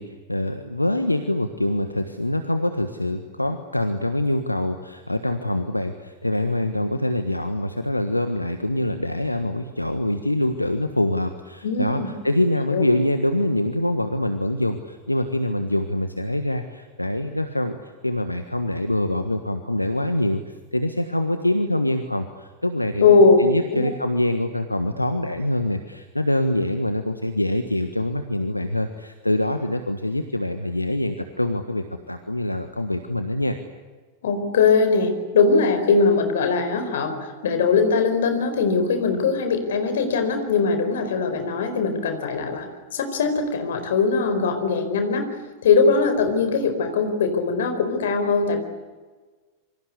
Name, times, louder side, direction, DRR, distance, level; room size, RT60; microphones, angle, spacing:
voice 1, 0.0-20.4 20.7-33.6, left 1 dB, 85° left, 8 dB, 1.4 m, -25 dB
voice 2, 11.6-12.1 12.7-12.9 23.0-23.4 23.7-23.8 34.2-42.7 42.9-45.3 45.6-48.6, left 4 dB, 60° left, 8 dB, 4.5 m, -20 dB
27.0 x 24.5 x 8.3 m, 1.4 s
figure-of-eight pair, 90°, 0 cm